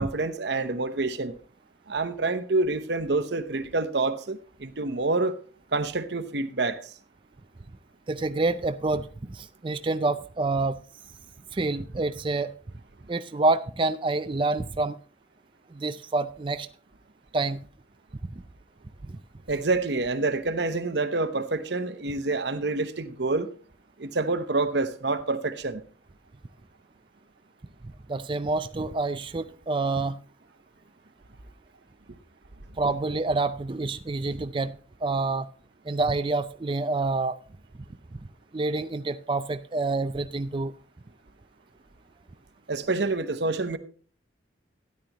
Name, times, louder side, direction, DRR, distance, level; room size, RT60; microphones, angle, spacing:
voice 1, 0.0-1.3 1.9-5.4 5.7-6.9 19.5-23.5 24.0-25.8 42.7-43.8, right 3 dB, 60° right, 0.9 m, -27 dB
voice 2, 8.1-10.8 11.5-12.5 13.1-15.0 15.7-16.7 17.3-17.6 19.1-19.2 28.1-30.2 32.8-34.7 35.0-35.5 35.8-37.4 38.5-40.7, right 3 dB, 25° right, 0.4 m, -27 dB
13.0 x 10.5 x 3.0 m
head